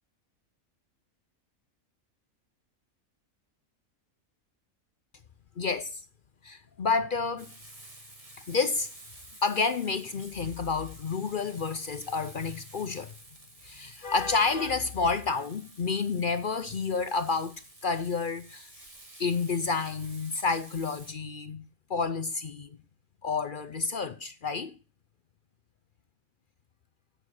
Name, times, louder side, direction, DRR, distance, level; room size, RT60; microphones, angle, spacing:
voice 1, 5.6-6.0 6.4-7.5 8.5-8.9 9.4-13.1 13.6-17.5 17.8-18.8 19.2-21.6 21.9-22.7 23.2-24.7, left 4 dB, 50° left, 0.7 m, -29 dB
Frying (food), 7.4-21.1, right 1 dB, 25° right, 2.2 m, -51 dB
8.7 x 8.0 x 6.3 m
omnidirectional pair, 1.5 m